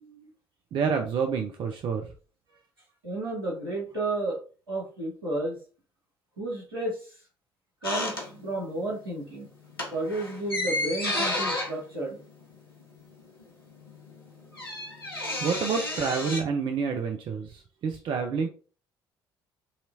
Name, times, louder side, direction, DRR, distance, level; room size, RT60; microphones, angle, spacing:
voice 1, 0.7-2.1 15.4-18.5, right 5 dB, 45° right, 4 dB, 0.6 m, -28 dB
voice 2, 3.0-4.4 4.7-5.6 6.4-7.2 7.8-9.5 9.9-12.2, right 2 dB, 80° right, -5 dB, 2.0 m, -32 dB
sound 1, 7.8-8.8 9.1-9.3 9.6-13.1 13.4-13.5 13.7-16.4, left 2 dB, 85° left, 0.8 m, -32 dB
5.7 x 3.0 x 2.7 m, 0.37 s
figure-of-eight pair, 50°, 12 cm